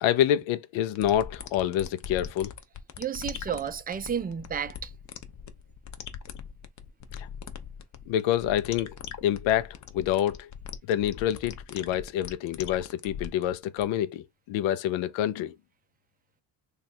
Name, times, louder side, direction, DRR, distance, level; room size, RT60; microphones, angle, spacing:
voice 1, 0.0-2.5 7.2-7.3 8.1-9.0 9.2-10.5 10.9-15.5, left 11 dB, 85° left, 0.6 m, -27 dB
sound 1, 1.0-13.8, left 8 dB, 40° left, 0.6 m, -41 dB
voice 2, 3.0-4.9, right 8 dB, 20° right, 0.4 m, -32 dB
3.1 x 2.4 x 4.1 m
cardioid pair, 105°, 45 cm